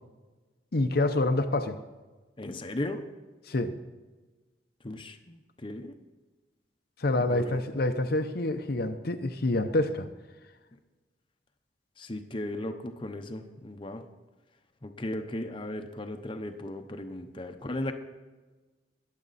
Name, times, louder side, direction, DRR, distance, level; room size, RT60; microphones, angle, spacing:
voice 1, 0.7-1.8 3.5-3.7 7.0-10.1, left 2 dB, 60° left, 6 dB, 0.8 m, -27 dB
voice 2, 2.4-3.1 4.8-5.9 7.1-7.6 12.0-14.0 14.8-17.9, left 1 dB, 30° left, 5 dB, 0.9 m, -36 dB
21.5 x 7.6 x 4.2 m, 1.2 s
head